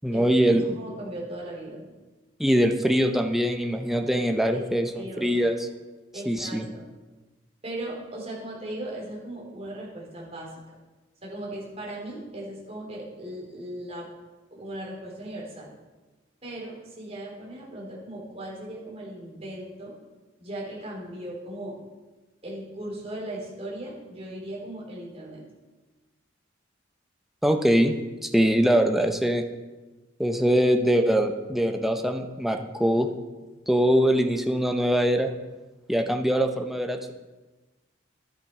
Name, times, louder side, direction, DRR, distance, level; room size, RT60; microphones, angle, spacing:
voice 1, 0.0-0.8 2.4-4.9 5.2-5.7 6.3-6.7 27.4-29.4 30.2-33.1 33.7-35.3 35.9-37.1, equal, ahead, 4 dB, 0.8 m, -23 dB
voice 2, 0.8-1.9 4.5-4.7 4.9-5.4 6.1-6.9 7.6-10.5 11.2-14.1 14.5-15.7 16.4-19.9 20.4-21.8 22.4-25.4, right 1 dB, 35° right, -4 dB, 4.1 m, -38 dB
12.0 x 10.5 x 4.8 m, 1.2 s
head